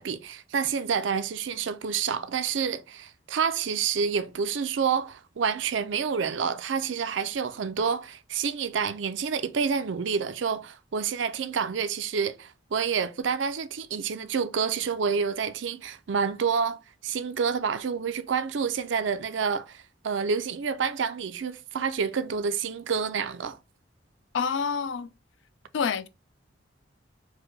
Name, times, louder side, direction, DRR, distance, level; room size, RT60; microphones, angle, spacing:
voice 1, 0.0-23.6, right 6 dB, 80° right, 0.5 m, -28 dB
voice 2, 24.3-25.1 25.7-26.1, left 6 dB, 75° left, 0.4 m, -27 dB
4.6 x 2.2 x 3.1 m
head